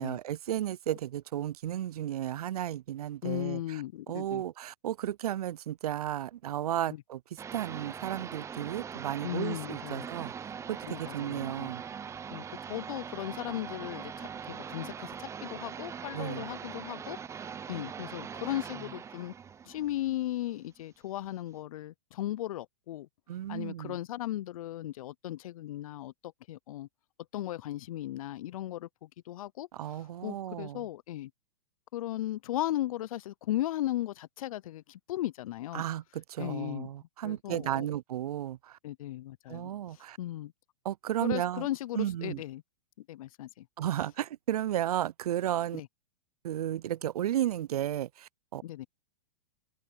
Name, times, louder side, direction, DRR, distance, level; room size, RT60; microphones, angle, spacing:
voice 1, 0.0-10.3 10.7-11.8 16.1-16.5 23.3-24.0 29.7-30.9 35.7-38.8 39.5-40.2 40.8-41.7 41.9-42.4 43.8-45.8 46.4-48.6, right 12 dB, 75° right, 0.6 m, -34 dB
voice 2, 3.2-4.4 9.2-10.1 10.9-11.7 12.3-19.3 19.7-23.1 23.5-26.9 27.3-29.7 30.2-31.3 31.9-35.8 36.4-36.9 37.2-37.9 38.8-40.5 41.2-42.6 43.1-43.7 45.7-45.9 48.6-48.9, left 14 dB, 65° left, 0.6 m, -36 dB
sound 1, 7.4-20.8, right 7 dB, 15° right, 0.7 m, -42 dB
open air
hypercardioid pair, 120°, 20 cm